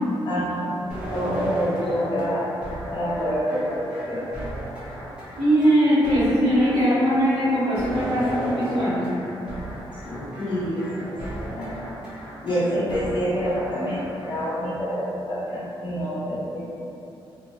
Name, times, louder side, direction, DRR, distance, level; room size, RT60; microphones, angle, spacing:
voice 1, 0.3-0.7 1.1-2.4 2.9-4.3 9.4-9.7 10.0-10.8 11.3-11.7 12.4-14.0 14.3-16.7, equal, 55° left, -10 dB, 0.9 m, -27 dB
sound 1, 0.9-14.5, right 1 dB, 10° right, 0.9 m, -35 dB
voice 2, 5.4-9.1, equal, 90° right, -15 dB, 1.1 m, -20 dB
2.8 x 2.1 x 3.0 m, 2.7 s
wide cardioid pair, 175°, 10 cm